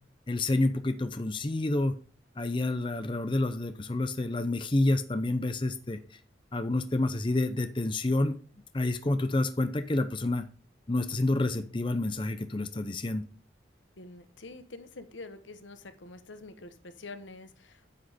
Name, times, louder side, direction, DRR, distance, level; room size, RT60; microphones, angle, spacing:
voice 1, 0.3-1.9 2.4-6.0 6.5-8.3 8.7-10.4 10.9-13.2, left 2 dB, 25° left, 9 dB, 0.6 m, -28 dB
voice 2, 14.0-17.9, left 3 dB, 85° left, 10 dB, 1.2 m, -46 dB
9.6 x 6.3 x 5.0 m, 0.39 s
head